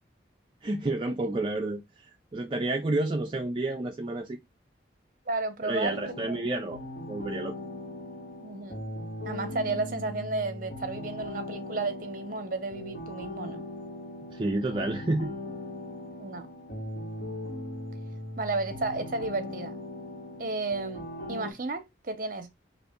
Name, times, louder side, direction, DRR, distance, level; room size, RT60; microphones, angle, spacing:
voice 1, 0.6-4.4 5.6-6.8 7.1-7.5 14.3-15.3, right 2 dB, 25° right, 0.4 m, -30 dB
voice 2, 5.3-5.9 6.2-6.4 8.4-8.8 9.2-13.6 16.2-16.5 18.4-19.7 20.4-22.5, right 3 dB, 45° right, 0.7 m, -33 dB
sound 1, 5.8-21.5, left 1 dB, 60° left, 1.4 m, -39 dB
4.0 x 2.5 x 3.5 m
head